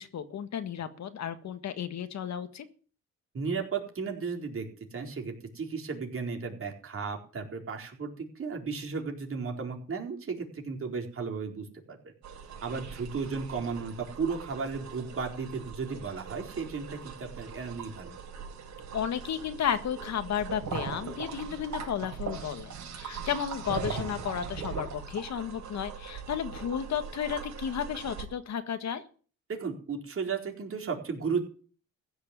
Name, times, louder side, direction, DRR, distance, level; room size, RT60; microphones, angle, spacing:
voice 1, 0.0-2.7 18.9-29.0, left 8 dB, 65° left, 9 dB, 1.7 m, -33 dB
voice 2, 3.3-12.1 12.6-18.2 29.5-31.4, right 5 dB, 45° right, 2 dB, 4.3 m, -34 dB
sound 1, 12.2-28.2, right 6 dB, 65° right, 5.0 m, -40 dB
15.5 x 6.6 x 9.6 m, 0.41 s
cardioid pair, 90°, 30 cm